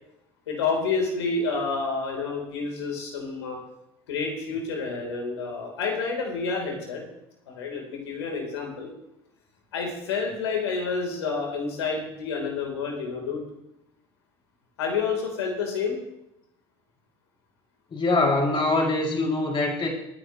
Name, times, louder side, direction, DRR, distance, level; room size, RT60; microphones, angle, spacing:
voice 1, 0.5-3.6 4.1-7.0 7.5-8.9 9.7-13.4 14.8-16.0, left 4 dB, 80° left, 1 dB, 3.9 m, -29 dB
voice 2, 17.9-19.9, left 2 dB, 40° left, -1 dB, 6.0 m, -23 dB
23.5 x 10.0 x 3.2 m, 0.82 s
hypercardioid pair, 65°, 14 cm